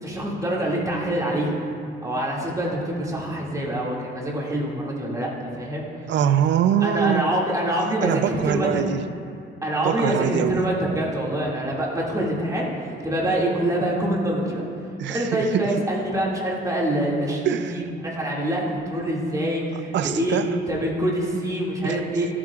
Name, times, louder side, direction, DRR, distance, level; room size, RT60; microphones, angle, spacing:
voice 1, 0.0-1.5 2.0-5.9 6.8-8.7 9.6-14.6 15.1-20.4 20.7-22.3, right 1 dB, 15° right, -4 dB, 2.2 m, -25 dB
voice 2, 6.1-7.4 8.0-9.1 9.8-10.6 15.0-15.7 17.5-17.9 19.9-20.6 21.8-22.0, right 9 dB, 65° right, 11 dB, 0.4 m, -23 dB
14.5 x 8.4 x 2.4 m, 2.4 s
cardioid pair, 90°, 20 cm